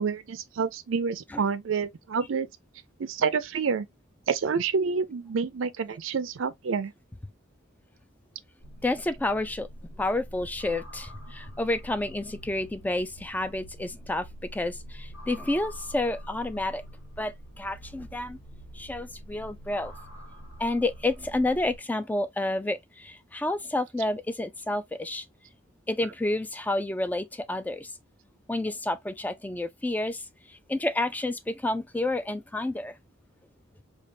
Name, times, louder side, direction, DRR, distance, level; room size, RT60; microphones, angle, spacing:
voice 1, 0.0-2.5 3.0-3.9 4.3-6.9, right 5 dB, 70° right, 0.5 m, -28 dB
sound 1, 8.6-21.8, equal, 85° left, 1.5 m, -45 dB
voice 2, 8.8-9.7 10.0-14.3 14.5-16.8 17.2-18.4 18.7-19.9 20.6-25.3 25.9-27.9 28.5-30.2 30.5-32.9, left 2 dB, 10° left, 0.3 m, -30 dB
4.5 x 2.4 x 2.6 m
head